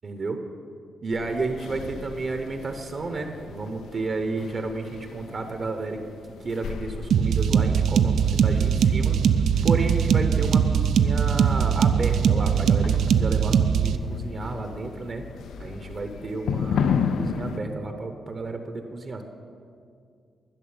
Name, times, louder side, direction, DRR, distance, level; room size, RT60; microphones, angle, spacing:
voice 1, 0.0-0.4 1.0-6.0 6.4-9.2 9.6-15.3 15.6-19.2, right 3 dB, 40° right, 6 dB, 0.9 m, -32 dB
sound 1, 1.1-17.6, left 6 dB, 85° left, 0.5 m, -35 dB
sound 2, 7.1-14.0, right 7 dB, 75° right, 0.5 m, -21 dB
12.0 x 6.4 x 9.7 m, 2.3 s
wide cardioid pair, 150°, 0 cm